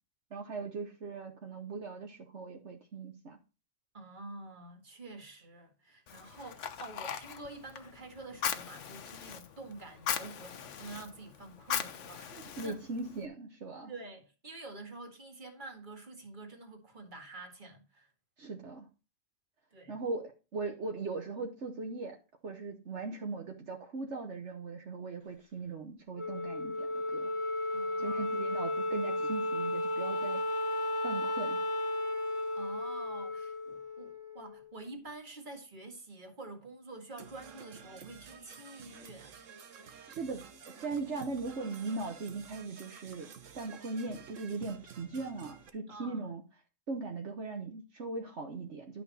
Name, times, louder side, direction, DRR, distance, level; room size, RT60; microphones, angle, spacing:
voice 1, 0.3-3.4 12.3-13.9 18.4-18.9 19.9-22.2 22.4-27.3 28.0-30.4 31.0-31.6 39.8-46.4 46.9-49.0, right 3 dB, 65° right, 1.5 m, -39 dB
voice 2, 3.9-12.3 12.6-12.8 13.9-18.1 19.7-20.0 27.7-28.4 32.5-39.3 45.9-46.3, right 2 dB, 40° right, 2.1 m, -48 dB
Fire, 6.1-13.2, left 8 dB, 75° left, 1.2 m, -39 dB
Wind instrument woodwind instrument, 26.2-34.7, left 1 dB, 15° right, 1.0 m, -34 dB
Percussion / Brass instrument, 37.2-45.7, right 7 dB, 85° right, 1.4 m, -51 dB
11.5 x 6.1 x 4.2 m
omnidirectional pair, 1.3 m